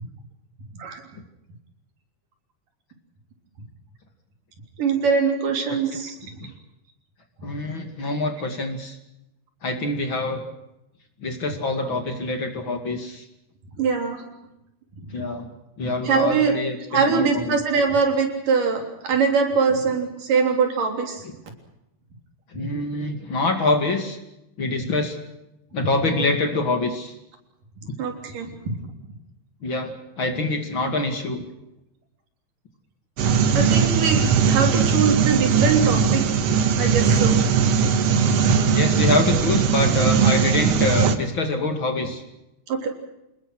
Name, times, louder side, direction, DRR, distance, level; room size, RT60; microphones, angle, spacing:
voice 1, 4.8-6.4 13.8-14.2 15.0-15.3 16.0-16.5 16.9-21.2 28.0-28.5 33.5-36.3 36.8-37.4 42.7-42.9, right 5 dB, 90° right, 3 dB, 5.1 m, -22 dB
voice 2, 7.4-9.0 9.6-10.4 11.2-13.3 15.1-15.5 15.8-17.6 22.5-24.2 24.6-25.2 25.7-27.1 27.9-28.0 29.6-31.5 38.6-42.2, left 2 dB, 40° left, 5 dB, 2.9 m, -25 dB
sound 1, 33.2-41.2, right 6 dB, 60° right, 2.1 m, -19 dB
28.5 x 20.0 x 6.3 m, 0.88 s
omnidirectional pair, 3.6 m